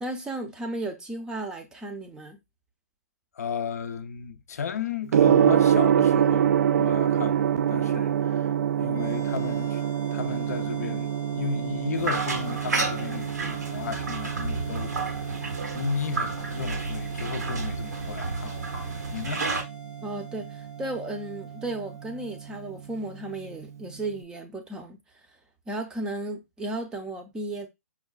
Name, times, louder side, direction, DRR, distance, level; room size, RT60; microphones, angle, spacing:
voice 1, 0.0-2.4 20.0-25.0 25.7-27.7, right 2 dB, 10° right, 0.5 m, -34 dB
voice 2, 3.3-9.8 10.1-15.3 15.7-18.8 19.1-19.5, left 6 dB, 70° left, 0.5 m, -34 dB
Gong, 5.1-24.1, right 9 dB, 65° right, 0.3 m, -27 dB
sound 1, 8.9-23.5, right 6 dB, 25° left, 0.7 m, -46 dB
sound 2, 12.0-19.6, right 3 dB, 90° right, 1.1 m, -31 dB
5.6 x 2.1 x 2.3 m
hypercardioid pair, 150°, 9 cm